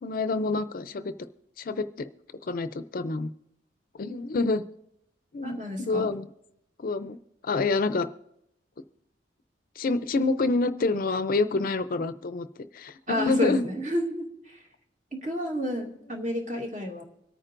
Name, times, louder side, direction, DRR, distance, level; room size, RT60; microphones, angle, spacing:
voice 1, 0.0-1.1 1.6-2.1 2.4-3.3 4.0-4.6 5.3-6.3 6.8-7.2 7.4-8.1 9.8-12.5 12.7-13.6, left 3 dB, 50° left, 12 dB, 0.4 m, -27 dB
voice 2, 5.4-6.1 13.1-14.6 15.1-17.0, left 1 dB, 45° right, 0 dB, 2.1 m, -31 dB
25.0 x 9.0 x 2.5 m, 0.79 s
head